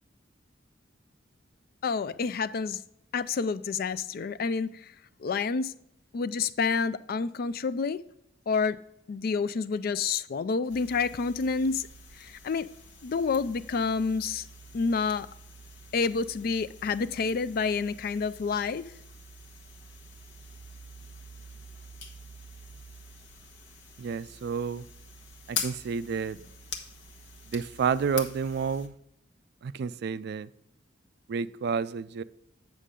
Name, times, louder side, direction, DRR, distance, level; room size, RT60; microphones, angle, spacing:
voice 1, 1.8-2.8 3.1-4.9 5.2-5.7 6.1-8.0 8.5-8.8 9.1-11.9 12.2-12.7 13.0-14.5 14.7-15.3 15.9-18.8, left 5 dB, 55° left, 0.4 m, -28 dB
sound 1, 10.7-28.9, left 4 dB, 85° left, 1.2 m, -44 dB
voice 2, 24.0-24.9 25.5-26.4 27.5-28.9 29.6-30.5 31.3-32.2, right 6 dB, 60° right, 0.3 m, -30 dB
8.3 x 6.4 x 3.7 m
head